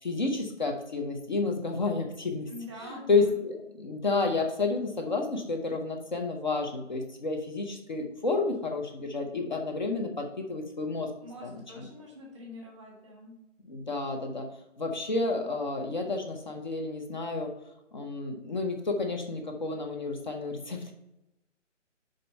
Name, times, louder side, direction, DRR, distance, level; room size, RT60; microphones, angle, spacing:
voice 1, 0.0-2.5 2.9-11.1 11.4-11.5 13.7-14.5 14.8-17.5 17.9-20.9, left 3 dB, 40° left, 3 dB, 0.8 m, -30 dB
voice 2, 2.5-3.4 11.2-13.3, left 1 dB, 5° left, -2 dB, 0.8 m, -45 dB
5.3 x 5.2 x 5.4 m, 0.92 s
hypercardioid pair, 165°, 37 cm